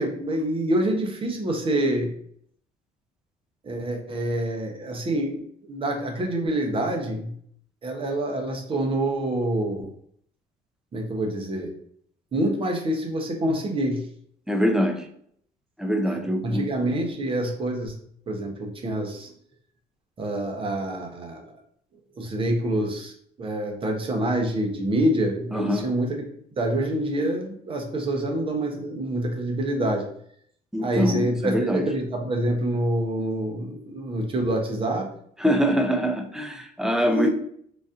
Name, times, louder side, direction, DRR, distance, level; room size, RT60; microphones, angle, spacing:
voice 1, 0.0-2.1 3.6-7.3 7.8-9.9 10.9-11.7 12.3-14.1 16.1-18.0 18.3-19.3 20.2-21.6 22.2-23.1 23.4-26.2 26.6-30.1 30.8-35.1 37.1-37.3, right 1 dB, 30° right, 3 dB, 0.7 m, -26 dB
voice 2, 14.5-15.1 15.8-16.7 25.5-25.9 30.7-31.9 35.4-37.3, equal, 5° right, 5 dB, 0.4 m, -24 dB
4.0 x 2.5 x 2.4 m, 0.65 s
cardioid pair, 110°, 17 cm